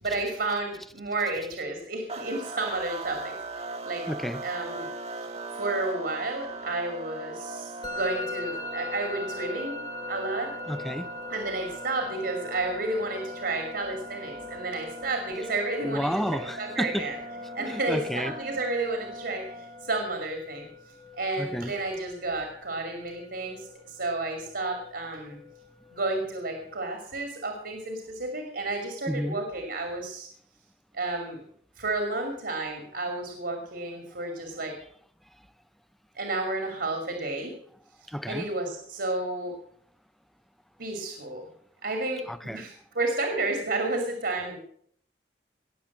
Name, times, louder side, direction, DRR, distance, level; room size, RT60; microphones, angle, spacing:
voice 1, 0.0-4.1 4.4-4.9 5.5-9.8 10.1-10.5 11.3-17.2 17.5-20.7 21.2-25.4 25.9-30.3 30.9-31.4 31.8-34.7 36.1-37.6 38.3-39.6 40.8-41.4 41.8-44.6, right 2 dB, 65° right, 2.7 m, -31 dB
sound 1, 2.1-19.9, right 2 dB, 40° right, 1.4 m, -40 dB
voice 2, 4.1-4.4 10.7-11.1 15.8-17.1 17.6-18.3 21.4-21.7 29.1-29.4 38.1-38.5 42.3-42.7, equal, ahead, 0.6 m, -31 dB
Musical instrument, 7.8-26.7, left 2 dB, 25° left, 1.1 m, -42 dB
19.0 x 7.4 x 7.4 m
head